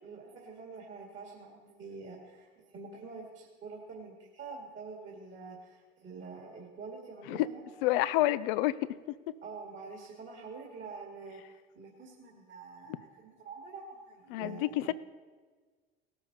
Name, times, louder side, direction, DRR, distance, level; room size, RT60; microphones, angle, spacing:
voice 1, 0.0-8.0 9.4-14.9, right 4 dB, 40° right, -1 dB, 2.2 m, -46 dB
voice 2, 7.8-8.8 9.3-9.4 14.3-14.9, left 15 dB, 65° left, 16 dB, 0.6 m, -28 dB
18.0 x 7.1 x 4.1 m, 1.4 s
hypercardioid pair, 65°, 30 cm